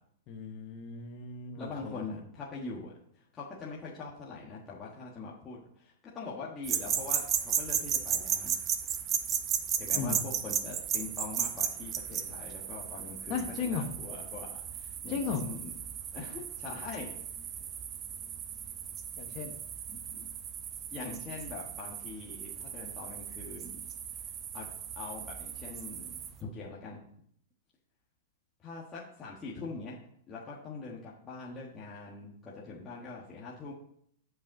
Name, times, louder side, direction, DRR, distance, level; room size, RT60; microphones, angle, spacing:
voice 1, 0.3-2.0 9.9-10.2 13.3-13.8 15.1-15.4 19.2-19.5, left 5 dB, 35° left, 3 dB, 1.0 m, -35 dB
voice 2, 1.5-8.6 9.8-15.7 16.1-17.1 19.9-20.3 20.9-23.8 24.5-24.7 24.9-27.0 28.6-29.9 30.3-33.7, left 4 dB, 20° left, -6 dB, 1.4 m, -43 dB
sound 1, 6.6-26.4, right 8 dB, 25° right, 0.7 m, -35 dB
7.3 x 5.4 x 7.5 m, 0.69 s
supercardioid pair, 160°, 0 cm